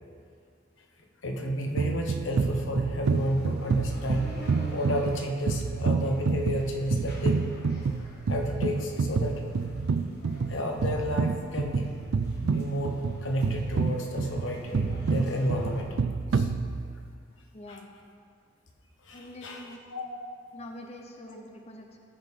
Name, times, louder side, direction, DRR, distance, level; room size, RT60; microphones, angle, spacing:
voice 1, 1.2-4.3 4.7-7.4 8.3-9.4 10.5-11.9 12.4-15.9 16.3-16.5 17.7-17.8 19.1-19.7 19.9-20.3 21.3-21.4, equal, 90° left, 2 dB, 1.1 m, -31 dB
sound 1, 1.8-17.1, right 4 dB, 85° right, 0.4 m, -29 dB
sound 2, 3.0-15.8, left 1 dB, 60° left, 1.5 m, -49 dB
voice 2, 17.5-17.9 19.1-19.8 20.5-22.0, left 1 dB, 35° left, 2 dB, 0.7 m, -45 dB
14.0 x 6.4 x 3.6 m, 2.2 s
head